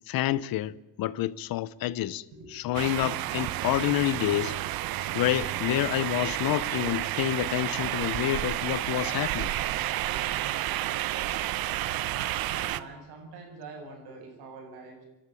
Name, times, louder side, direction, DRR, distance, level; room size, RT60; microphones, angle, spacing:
voice 1, 0.1-2.2 2.5-4.6 5.1-9.5, left 14 dB, 65° left, 1.0 m, -28 dB
sound 1, 2.7-12.8, right 14 dB, 65° right, 1.0 m, -31 dB
voice 2, 12.5-15.0, right 3 dB, 85° right, 7.7 m, -45 dB
28.5 x 12.0 x 9.1 m
cardioid pair, 110°, 38 cm